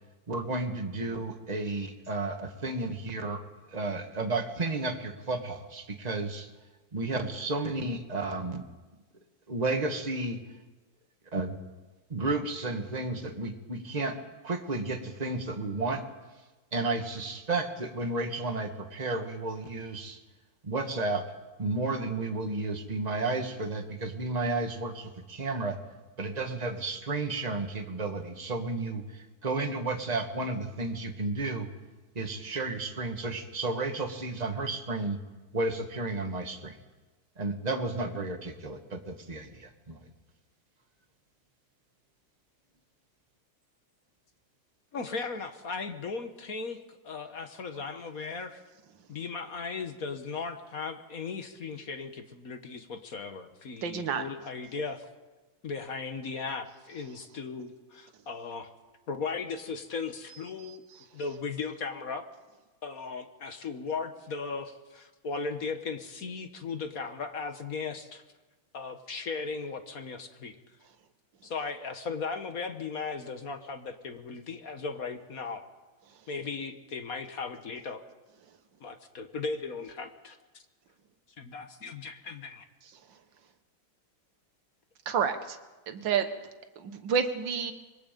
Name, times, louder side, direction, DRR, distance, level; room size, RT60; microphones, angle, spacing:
voice 1, 0.3-3.4 3.7-6.5 6.9-8.6 9.5-10.4 11.3-11.5 12.1-14.2 14.4-16.0 16.7-20.2 20.6-21.2 21.6-25.8 26.2-31.7 32.2-35.2 35.5-36.8 37.4-40.0, right 3 dB, 20° right, 4 dB, 1.6 m, -32 dB
voice 2, 44.9-48.6 49.1-55.0 55.6-58.7 59.1-60.8 61.1-62.2 62.8-68.2 68.7-70.6 71.4-75.6 76.3-78.0 78.8-80.6 81.4-82.6, left 4 dB, 45° left, 8 dB, 1.5 m, -37 dB
voice 3, 53.8-54.3 85.1-85.6 85.9-86.3 86.8-87.7, right 7 dB, 65° right, 7 dB, 2.0 m, -29 dB
25.5 x 22.0 x 5.3 m, 1.2 s
omnidirectional pair, 2.3 m